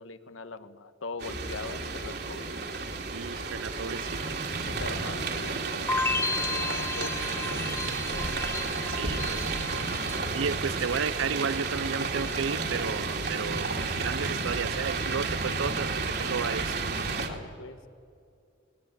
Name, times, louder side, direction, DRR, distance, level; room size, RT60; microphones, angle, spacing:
voice 1, 0.0-2.5 4.6-8.5 10.2-10.3 17.3-17.9, left 3 dB, 90° left, 1.3 m, -42 dB
sound 1, 1.2-17.3, right 3 dB, 50° right, 2.6 m, -32 dB
voice 2, 3.1-4.4 8.9-9.5 10.3-16.8, right 6 dB, 85° right, 0.6 m, -33 dB
sound 2, 5.9-10.9 11.2-11.9, left 3 dB, 10° left, 0.9 m, -34 dB
20.0 x 20.0 x 9.2 m
head